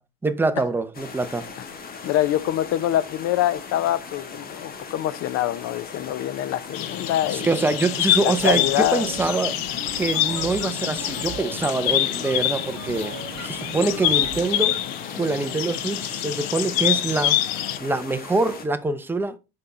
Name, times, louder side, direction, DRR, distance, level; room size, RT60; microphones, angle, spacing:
voice 1, 0.2-1.5 7.3-8.6 8.9-9.6 10.0-13.2 13.4-14.8 15.1-17.4 17.8-19.4, right 3 dB, 5° right, 0.7 m, -24 dB
sound 1, 0.9-18.7, left 5 dB, 30° left, 1.5 m, -39 dB
voice 2, 2.0-7.6 8.2-9.1, left 13 dB, 50° left, 0.7 m, -25 dB
sound 2, 6.7-17.8, left 13 dB, 85° left, 1.0 m, -26 dB
sound 3, 8.0-14.8, right 6 dB, 55° right, 2.3 m, -39 dB
6.7 x 5.3 x 4.2 m
cardioid pair, 130°, 30 cm